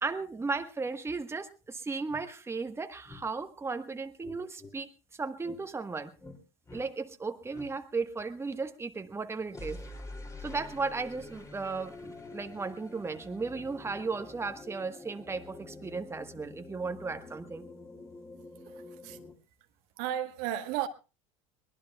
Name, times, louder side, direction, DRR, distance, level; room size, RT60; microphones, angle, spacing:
voice 1, 0.0-4.9 5.2-6.1 6.7-9.8 10.4-17.7, right 4 dB, 15° right, 1.3 m, -35 dB
sound 1, 1.6-1.7 2.1-2.3 3.1-3.3 4.2-4.8 5.4-5.6 6.2-6.4 6.7-6.9 7.5-7.7 9.5-19.3, left 2 dB, 20° left, 2.8 m, -47 dB
voice 2, 18.6-19.2 20.0-20.9, right 12 dB, 65° right, 1.3 m, -34 dB
23.0 x 19.0 x 2.3 m
hypercardioid pair, 80°, 17 cm